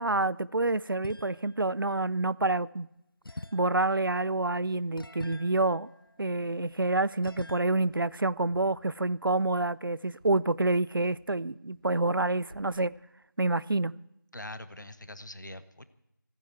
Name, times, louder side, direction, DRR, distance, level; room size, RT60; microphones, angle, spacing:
voice 1, 0.0-2.9 3.5-5.9 6.2-13.0 13.4-14.0, right 2 dB, 75° right, 0.5 m, -28 dB
sound 1, 1.0-1.7 3.2-6.7 7.2-7.6, left 2 dB, 85° left, 0.7 m, -45 dB
sound 2, 5.9-6.9 7.3-11.5 11.7-12.2 12.5-13.0, right 1 dB, 20° right, 2.7 m, -57 dB
voice 2, 14.3-15.9, left 1 dB, 60° left, 1.2 m, -43 dB
29.0 x 9.8 x 4.6 m
figure-of-eight pair, 180°, 12 cm